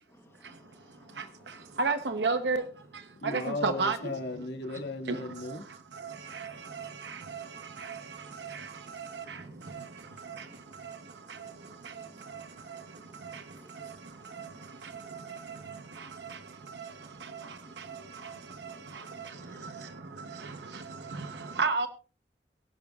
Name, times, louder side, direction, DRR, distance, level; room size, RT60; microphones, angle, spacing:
voice 1, 0.1-1.7 6.2-8.0 9.0-9.7 10.0-10.9 11.2-13.9 14.2-14.6 14.9-15.0 15.3-15.4 17.1-17.4 17.8-19.7 20.8-21.5, left 1 dB, 15° left, 0.9 m, -61 dB
voice 2, 1.8-2.6 3.2-4.0 5.1-5.2 6.0-6.5 6.8-7.4 7.8-8.0 8.4-8.7 9.0-9.4 9.7-9.8 18.2-18.3 21.1-21.3 21.6-21.9, right 4 dB, 85° right, 0.9 m, -30 dB
voice 3, 3.2-5.6 19.2-19.3, left 2 dB, 80° left, 2.0 m, -36 dB
22.5 x 10.5 x 2.4 m
head